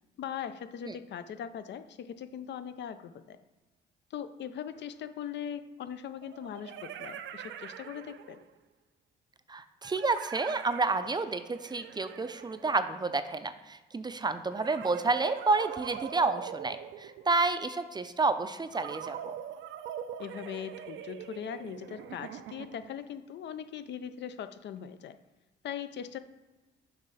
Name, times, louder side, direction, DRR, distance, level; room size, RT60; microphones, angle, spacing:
voice 1, 0.2-3.4 4.1-8.4 20.2-25.2 25.6-26.2, left 9 dB, 65° left, 11 dB, 0.5 m, -40 dB
sound 1, 4.7-4.8 6.2-8.6 9.8-13.3 14.5-17.6 18.7-23.0, right 9 dB, 70° right, 0.5 m, -43 dB
voice 2, 9.5-19.3, right 3 dB, 20° right, 11 dB, 0.4 m, -30 dB
7.0 x 3.2 x 5.5 m, 1.2 s
cardioid pair, 90°, 20 cm